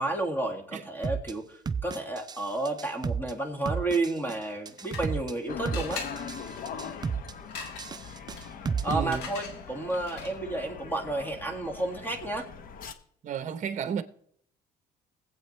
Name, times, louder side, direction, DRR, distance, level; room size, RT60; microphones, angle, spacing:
voice 1, 0.0-6.0 8.8-12.5, right 2 dB, 10° left, 2.0 m, -31 dB
sound 1, 1.0-1.3 1.7-2.4 2.7-3.3 3.7-4.3 4.7-5.3 5.7-6.4 6.7-7.3 7.7-9.0, right 5 dB, 25° right, 0.5 m, -31 dB
sound 2, 4.4-5.4 5.7-10.6, left 5 dB, 90° left, 1.6 m, -43 dB
sound 3, 5.5-12.9, left 6 dB, 55° left, 0.9 m, -42 dB
voice 2, 8.9-9.3 13.2-14.0, right 7 dB, 45° right, 0.8 m, -32 dB
21.0 x 8.0 x 3.2 m
cardioid pair, 110°, 17 cm